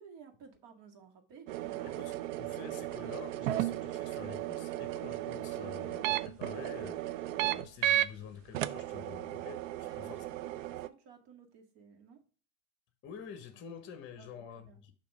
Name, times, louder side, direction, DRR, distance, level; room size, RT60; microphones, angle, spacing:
voice 1, 0.0-1.9 9.8-12.2 14.2-14.3 14.6-14.8, right 6 dB, 45° right, 1.8 m, -55 dB
sound 1, 1.5-8.1 8.5-10.9, right 14 dB, 65° right, 0.5 m, -35 dB
voice 2, 1.8-10.2 13.0-14.9, left 7 dB, 25° left, 1.0 m, -48 dB
6.8 x 3.0 x 5.4 m
supercardioid pair, 130°, 43 cm